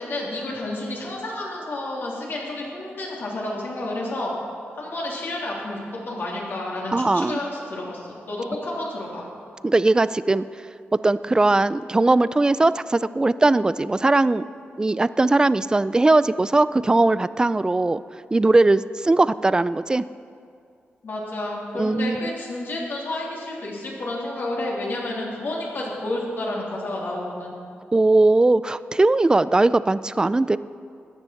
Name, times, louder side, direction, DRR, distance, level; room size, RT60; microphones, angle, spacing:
voice 1, 0.0-4.3 4.8-9.2 21.0-27.5, left 1 dB, 60° left, -4 dB, 3.2 m, -30 dB
voice 2, 6.9-7.4 9.6-10.4 10.9-14.4 14.8-18.0 18.3-20.0 21.7-22.2 27.9-30.6, right 2 dB, 20° right, 16 dB, 0.3 m, -19 dB
14.0 x 9.8 x 5.8 m, 2.3 s
cardioid pair, 90°, 4 cm